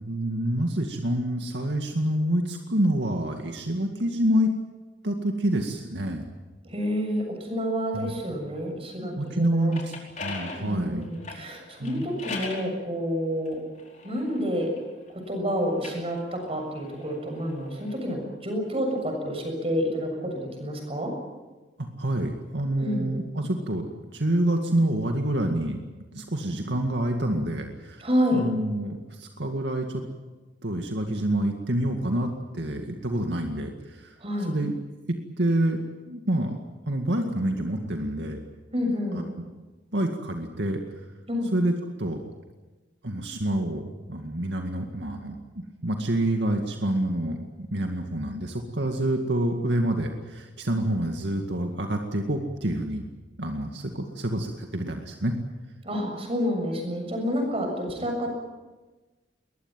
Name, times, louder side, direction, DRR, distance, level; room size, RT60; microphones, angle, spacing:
voice 1, 0.0-4.5 5.0-6.2 7.9-8.1 9.0-9.9 10.2-11.1 11.8-12.1 21.8-25.8 26.1-30.0 30.6-34.1 34.4-34.7 35.1-36.6 36.9-38.4 39.4-39.5 39.9-40.8 41.5-42.2 43.0-53.0 53.4-55.3, right 1 dB, 80° right, 3 dB, 2.1 m, -27 dB
voice 2, 6.7-9.7 10.6-13.6 14.0-14.7 15.1-21.1 22.8-23.1 28.0-28.4 34.2-34.5 38.7-39.3 41.3-41.5 55.8-58.4, equal, 35° right, 3 dB, 7.0 m, -29 dB
sound 1, 9.5-12.7 13.4-15.1 15.7-18.0, left 4 dB, 45° left, 4.7 m, -40 dB
22.5 x 20.0 x 9.1 m, 1.2 s
head